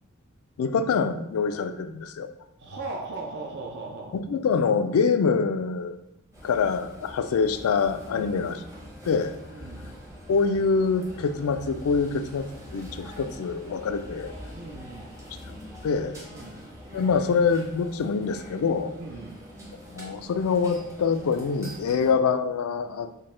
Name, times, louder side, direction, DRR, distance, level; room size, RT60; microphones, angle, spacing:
voice 1, 0.6-2.3 4.1-6.0 6.4-8.6 9.1-9.3 10.3-14.3 15.8-16.2 16.9-18.9 19.9-23.1, left 5 dB, 80° left, 9 dB, 0.3 m, -25 dB
voice 2, 2.6-4.1 8.1-8.4 9.5-10.0 14.5-15.2 16.3-16.7 19.0-19.4 21.9-22.1, right 3 dB, 55° right, 0 dB, 0.5 m, -38 dB
sound 1, 6.3-22.1, equal, 15° right, 0.7 m, -44 dB
3.9 x 2.1 x 3.7 m, 0.81 s
head